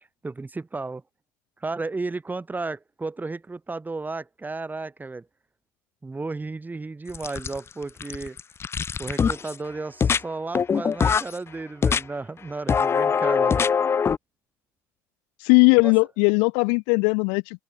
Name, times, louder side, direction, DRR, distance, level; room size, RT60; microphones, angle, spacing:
voice 1, 0.2-1.0 1.6-5.3 6.0-8.4 9.0-13.7 15.8-15.9, right 3 dB, 15° right, 8.0 m, -33 dB
sound 1, 7.1-7.7 8.0-9.5 10.0-10.2 10.5-11.3 11.8-12.0 12.7-14.2, left 6 dB, 25° left, 0.4 m, -22 dB
voice 2, 15.4-17.6, left 40 dB or more, 65° left, 0.7 m, -19 dB
open air
hypercardioid pair, 70°, 10 cm